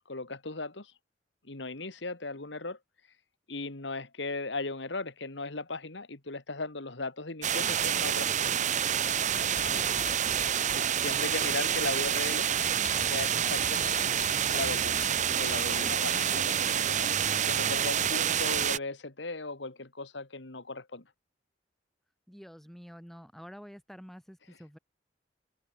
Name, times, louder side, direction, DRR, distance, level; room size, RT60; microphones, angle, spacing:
voice 1, 0.1-0.9 1.4-2.8 3.5-8.6 9.7-10.0 10.6-12.5 13.0-14.1 14.5-15.0 15.3-17.1 17.4-21.0, left 3 dB, 70° left, 2.1 m, -37 dB
sound 1, 7.4-18.8, right 9 dB, 40° right, 0.7 m, -28 dB
sound 2, 9.2-17.7, left 5 dB, 40° left, 7.9 m, -45 dB
voice 2, 9.4-10.3 22.3-24.8, equal, ahead, 7.9 m, -49 dB
head